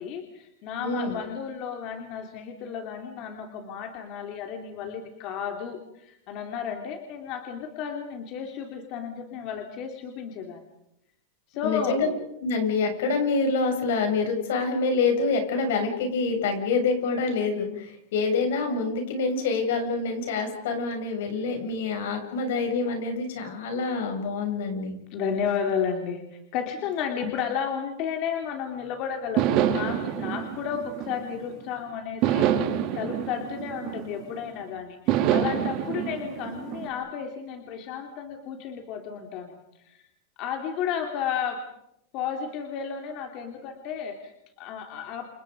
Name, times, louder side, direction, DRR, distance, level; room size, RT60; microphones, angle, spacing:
voice 1, 0.0-10.6 11.5-12.0 25.1-32.5 32.9-39.5 39.9-40.0 40.4-41.6 42.1-44.3 44.6-45.3, left 7 dB, 40° left, 4 dB, 3.0 m, -32 dB
voice 2, 0.8-1.2 11.6-12.1 12.4-25.0 27.2-27.3, left 4 dB, 75° left, 5 dB, 7.5 m, -26 dB
sound 1, 29.4-31.6 32.2-34.5 35.1-36.9, right 10 dB, 40° right, 3.6 m, -27 dB
29.0 x 28.0 x 5.3 m, 0.81 s
supercardioid pair, 160°, 0 cm